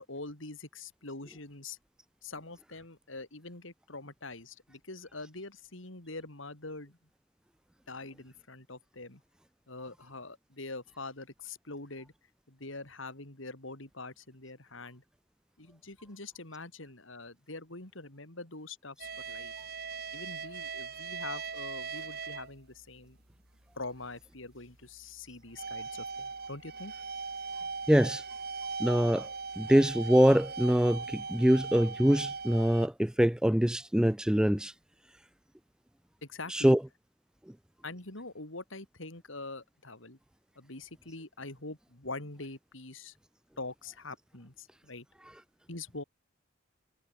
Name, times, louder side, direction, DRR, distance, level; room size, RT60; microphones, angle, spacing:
voice 1, 0.0-1.8 2.2-7.0 7.9-9.2 9.7-12.1 12.5-15.0 15.6-19.5 20.1-23.2 23.7-26.9 36.2-36.8 37.8-40.2 40.6-43.2 43.6-45.1 45.7-46.0, left 3 dB, 70° left, 3.8 m, -44 dB
sound 1, 19.0-22.6 23.0-23.2 23.8-23.9 25.2-32.9, right 5 dB, 50° right, 5.2 m, -39 dB
voice 2, 27.9-28.2 28.8-29.3 29.6-34.7 36.5-36.9, equal, 5° right, 0.3 m, -24 dB
head